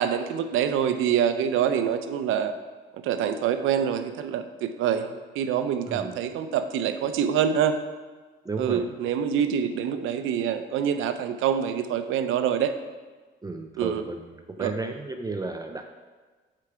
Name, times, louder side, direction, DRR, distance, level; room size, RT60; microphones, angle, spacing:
voice 1, 0.0-2.5 3.0-7.7 8.6-12.7 13.8-14.0 14.6-14.7, right 8 dB, 85° right, 9 dB, 0.6 m, -26 dB
voice 2, 8.4-8.8 13.4-15.9, right 3 dB, 20° right, 5 dB, 0.5 m, -33 dB
7.5 x 4.7 x 5.0 m, 1.4 s
cardioid pair, 90°, 20 cm